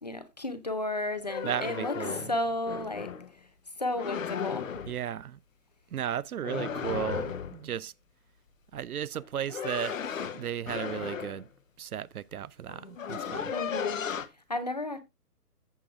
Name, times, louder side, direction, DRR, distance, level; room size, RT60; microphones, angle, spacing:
voice 1, 0.0-3.5 3.8-4.7 13.5-14.0 14.3-15.0, left 1 dB, 25° left, 0.6 m, -33 dB
sound 1, 1.1-3.3 4.0-5.0 6.4-7.6 9.1-11.4 12.3-12.4 12.7-14.3, left 7 dB, 55° left, 0.9 m, -35 dB
voice 2, 1.4-2.2 4.9-5.4 5.9-7.9 8.7-10.0 10.3-11.5 11.8-13.5, right 9 dB, 65° right, 0.5 m, -35 dB
14.5 x 6.2 x 2.4 m
hypercardioid pair, 160°, 48 cm